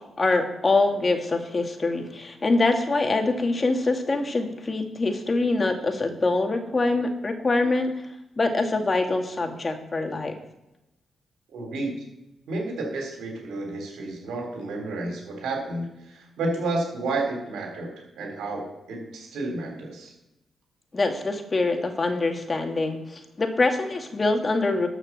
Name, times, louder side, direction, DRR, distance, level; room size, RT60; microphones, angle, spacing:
voice 1, 0.2-7.9 8.4-10.3 20.9-24.9, left 3 dB, 35° left, 5 dB, 2.0 m, -24 dB
voice 2, 11.5-12.0 12.5-20.1, right 2 dB, 80° right, 2 dB, 3.5 m, -31 dB
12.5 x 5.6 x 7.3 m, 0.92 s
supercardioid pair, 55°, 0 cm